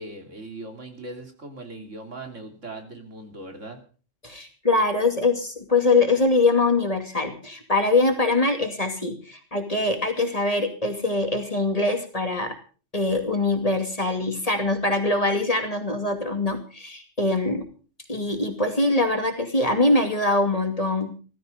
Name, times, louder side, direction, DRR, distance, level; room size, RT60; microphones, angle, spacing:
voice 1, 0.0-3.8, right 2 dB, 70° right, 4 dB, 3.3 m, -39 dB
voice 2, 4.2-12.5 12.9-17.7 18.1-21.1, left 2 dB, 30° left, 5 dB, 2.6 m, -23 dB
16.0 x 14.5 x 5.2 m, 0.39 s
omnidirectional pair, 1.3 m